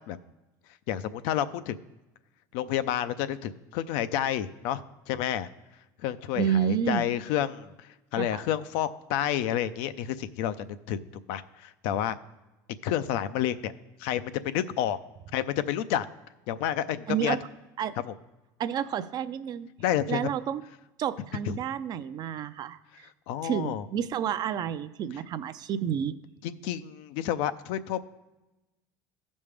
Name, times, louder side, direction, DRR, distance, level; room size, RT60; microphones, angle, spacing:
voice 1, 0.9-1.8 2.5-5.5 6.0-7.7 8.1-11.0 11.3-12.2 12.8-13.7 14.0-15.0 15.3-16.1 16.5-17.4 19.8-20.2 21.5-21.6 23.3-23.8 26.4-28.1, left 11 dB, 70° left, 13 dB, 0.5 m, -29 dB
voice 2, 6.4-7.0 8.2-8.4 17.1-17.4 17.8-17.9 18.6-19.7 20.1-20.6 21.0-22.8 23.4-26.1, right 9 dB, 45° right, 13 dB, 0.5 m, -30 dB
14.5 x 5.3 x 3.3 m, 1.0 s
supercardioid pair, 105°, 10 cm